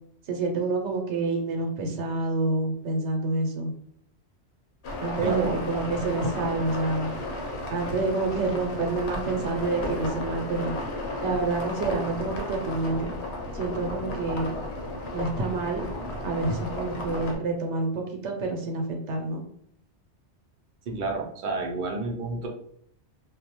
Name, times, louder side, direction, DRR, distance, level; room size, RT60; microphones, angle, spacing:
voice 1, 0.3-3.7 5.0-7.1 7.7-10.7 11.2-13.1 13.5-14.5 15.1-15.8 16.2-19.4, right 3 dB, 85° right, 2 dB, 0.9 m, -28 dB
sound 1, 4.8-17.4, left 2 dB, 75° left, 0.9 m, -34 dB
voice 2, 5.2-5.8 20.9-22.5, right 3 dB, 55° right, 2 dB, 0.6 m, -30 dB
2.3 x 2.1 x 2.9 m, 0.67 s
omnidirectional pair, 1.2 m